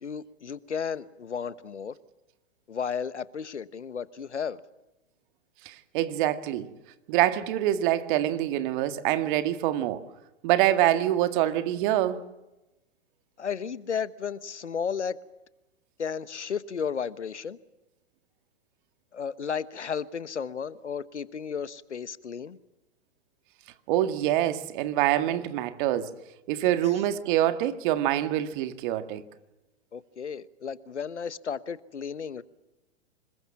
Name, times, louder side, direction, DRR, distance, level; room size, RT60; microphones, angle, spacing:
voice 1, 0.0-2.0 2.7-4.6 13.4-15.2 16.0-17.6 19.1-22.6 26.8-26.9 29.9-32.4, left 7 dB, 90° left, 1.2 m, -33 dB
voice 2, 5.7-6.7 7.1-10.0 10.4-12.2 23.9-26.1 26.5-29.2, right 13 dB, 45° right, 1.9 m, -25 dB
26.0 x 21.5 x 7.3 m
hypercardioid pair, 115°, 34 cm